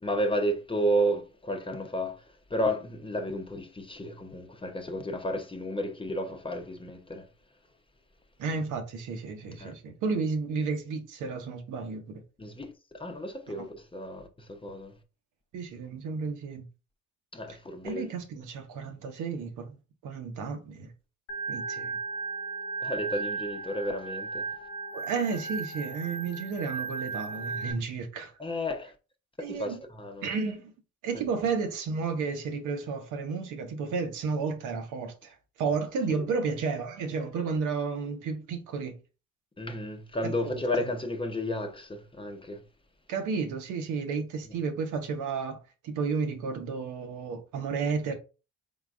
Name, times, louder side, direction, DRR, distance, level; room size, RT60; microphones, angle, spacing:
voice 1, 0.0-2.2 2.5-7.3 9.6-9.7 12.4-14.9 17.3-18.0 22.8-24.4 28.4-28.9 29.4-30.3 31.1-31.2 36.1-36.2 39.6-42.6, equal, 15° left, 0.7 m, -32 dB
voice 2, 8.4-12.2 13.5-13.7 15.5-16.7 17.5-17.6 17.8-19.7 20.0-20.9 21.5-22.0 24.9-28.3 29.4-29.8 30.2-30.6 31.0-39.0 40.2-40.9 43.1-45.6 45.8-48.2, right 5 dB, 85° right, 1.0 m, -32 dB
Organ, 21.3-27.7, right 4 dB, 75° left, 1.0 m, -35 dB
3.9 x 3.8 x 2.4 m
cardioid pair, 90°, 30 cm